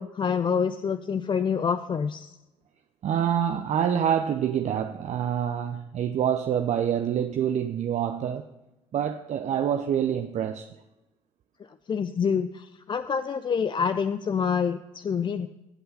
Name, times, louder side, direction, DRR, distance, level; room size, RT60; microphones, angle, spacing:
voice 1, 0.0-2.3 11.9-15.5, left 6 dB, 25° left, 0.5 m, -27 dB
voice 2, 3.0-8.4 8.9-10.7, right 9 dB, 40° right, 0.6 m, -26 dB
16.0 x 7.9 x 4.1 m
figure-of-eight pair, 50°, 18 cm